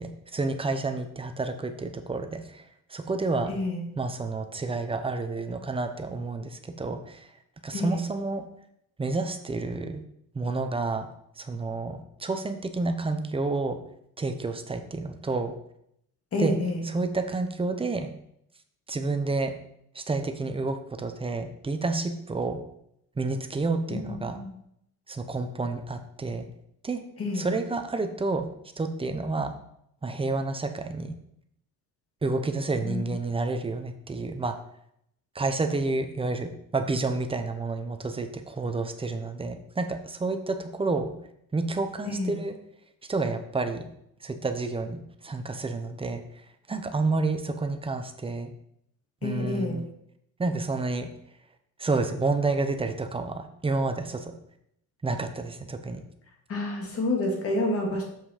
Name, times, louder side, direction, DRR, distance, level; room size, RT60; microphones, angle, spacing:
voice 1, 0.0-2.6 2.9-3.5 4.0-7.3 7.6-8.5 9.0-10.0 10.3-11.1 11.4-13.8 14.2-15.5 16.4-16.5 16.8-18.1 18.9-19.5 19.9-22.6 23.2-24.4 25.1-26.5 26.8-27.0 27.3-28.5 28.8-29.5 30.0-31.1 32.2-34.5 35.3-41.1 41.5-42.6 43.1-43.8 44.2-46.2 46.7-48.5 49.2-49.9 50.4-51.1 51.8-54.3 55.0-56.0, right 3 dB, 15° right, 7 dB, 0.7 m, -29 dB
voice 2, 3.5-3.8 7.7-8.0 16.3-16.8 23.9-24.5 27.2-27.5 32.8-33.2 42.1-42.4 49.2-49.8 56.5-58.0, left 2 dB, 40° left, 1 dB, 2.1 m, -29 dB
7.4 x 5.8 x 4.9 m, 0.74 s
cardioid pair, 160°, 36 cm